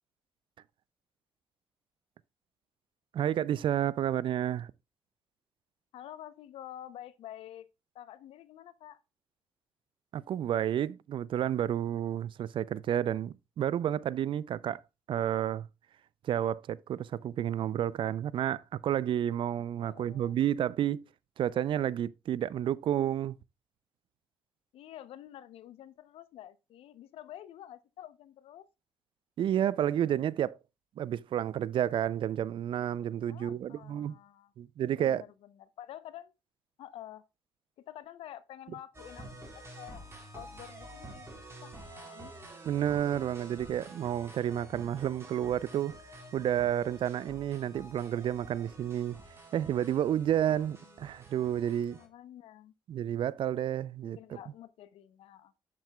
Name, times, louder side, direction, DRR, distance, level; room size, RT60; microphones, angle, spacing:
voice 1, 3.1-4.7 10.1-14.8 15.1-15.7 16.2-21.1 21.4-23.4 29.4-30.6 31.0-34.2 34.6-35.2 42.7-45.9 46.3-49.2 49.5-52.0 52.9-54.2, right 10 dB, 60° right, 0.4 m, -30 dB
voice 2, 5.9-7.7 7.9-9.0 19.8-20.4 24.7-28.7 33.3-34.5 35.0-36.3 36.8-37.2 37.9-39.3 39.5-40.1 40.3-42.3 44.6-44.8 50.5-51.0 51.9-52.7 54.2-55.5, left 12 dB, 75° left, 0.7 m, -49 dB
sound 1, 38.9-52.1, right 1 dB, 25° right, 3.7 m, -49 dB
7.7 x 7.3 x 2.2 m
supercardioid pair, 70°, 10 cm